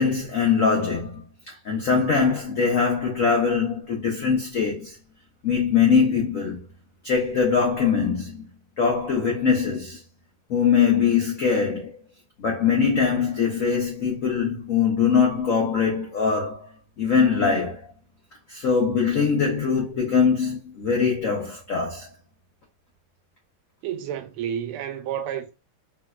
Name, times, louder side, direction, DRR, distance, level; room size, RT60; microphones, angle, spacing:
voice 1, 0.0-5.0 5.4-6.7 7.0-8.5 8.8-10.0 10.5-12.0 12.4-16.7 17.0-17.8 18.5-22.1, left 6 dB, 85° left, 0.7 m, -22 dB
voice 2, 23.8-25.5, right 9 dB, 90° right, 1.5 m, -30 dB
3.4 x 2.7 x 2.3 m
omnidirectional pair, 2.3 m